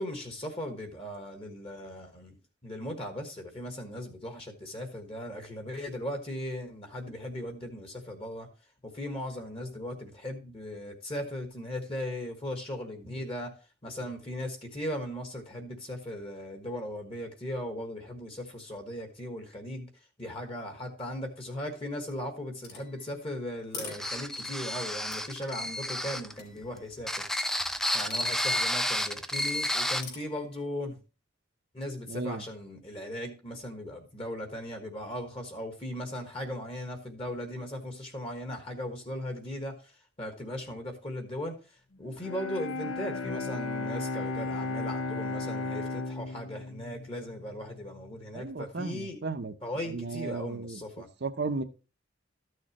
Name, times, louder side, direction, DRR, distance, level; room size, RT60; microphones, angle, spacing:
voice 1, 0.0-2.4 2.6-8.5 8.9-13.5 13.8-19.9 20.2-27.2 27.9-30.9 31.7-39.9 40.2-41.5 42.0-49.2 49.6-51.1, left 1 dB, 30° left, 1.4 m, -38 dB
sound 1, 22.6-24.6 25.1-26.9 28.0-28.9 30.0-30.7, left 4 dB, 50° left, 3.2 m, -47 dB
sound 2, 23.9-26.3 27.0-30.0, left 1 dB, ahead, 0.3 m, -31 dB
voice 2, 32.1-32.4 48.3-49.5 49.9-50.8 51.2-51.6, right 3 dB, 55° right, 0.7 m, -34 dB
Bowed string instrument, 42.2-48.2, left 3 dB, 85° left, 0.8 m, -35 dB
13.0 x 6.5 x 3.0 m
head